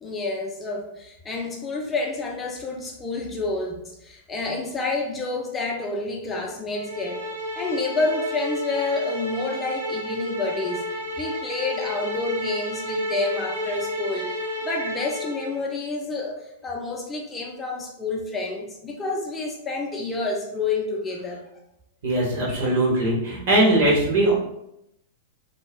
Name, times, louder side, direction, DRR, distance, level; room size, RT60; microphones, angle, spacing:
voice 1, 0.0-7.2 7.6-10.8 11.2-21.4, left 3 dB, 15° left, -1 dB, 0.4 m, -29 dB
sound 1, 6.7-15.5, left 1 dB, 85° right, 0.8 m, -31 dB
voice 2, 22.0-24.3, right 1 dB, 55° right, -5 dB, 1.2 m, -20 dB
2.6 x 2.3 x 2.2 m, 0.82 s
figure-of-eight pair, 100°, 0 cm